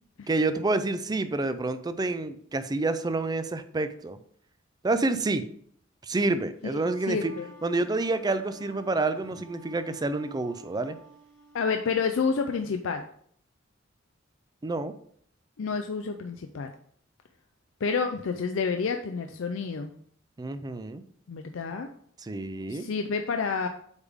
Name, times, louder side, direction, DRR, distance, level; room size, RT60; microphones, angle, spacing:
voice 1, 0.3-4.2 4.8-5.4 6.0-7.3 7.6-11.0 14.6-14.9 20.4-21.0 22.2-22.9, right 2 dB, 20° right, 11 dB, 0.4 m, -28 dB
Wind instrument woodwind instrument, 6.6-12.1, right 3 dB, 65° right, 1.9 m, -52 dB
voice 2, 7.1-7.5 11.5-13.1 15.6-16.7 17.8-19.9 21.3-21.9 22.7-23.7, left 5 dB, 80° left, 6 dB, 0.5 m, -29 dB
8.1 x 3.5 x 3.5 m, 0.62 s
head